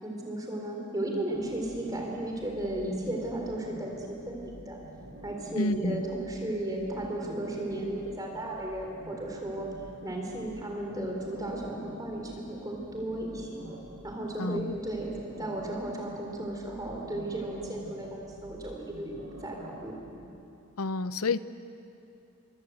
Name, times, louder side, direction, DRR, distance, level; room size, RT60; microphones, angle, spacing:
voice 1, 0.0-4.8 5.2-9.7 10.0-13.6 14.0-20.0, right 1 dB, 15° right, 0 dB, 3.7 m, -35 dB
sound 1, 1.3-20.3, right 1 dB, 85° right, 4.8 m, -48 dB
voice 2, 5.6-6.0 14.4-14.7 20.8-21.4, left 3 dB, 75° left, 14 dB, 0.7 m, -29 dB
26.5 x 23.5 x 8.0 m, 2.8 s
head